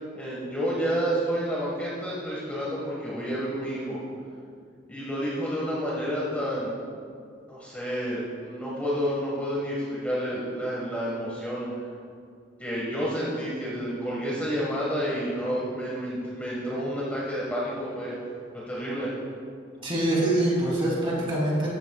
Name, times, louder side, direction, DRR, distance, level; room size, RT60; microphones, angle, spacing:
voice 1, 0.1-4.0 4.9-6.7 7.5-11.7 12.6-18.1 18.5-19.1, equal, 10° left, -7 dB, 1.6 m, -30 dB
voice 2, 19.8-21.7, right 1 dB, 25° right, -5 dB, 3.0 m, -24 dB
14.5 x 12.5 x 2.4 m, 2.3 s
head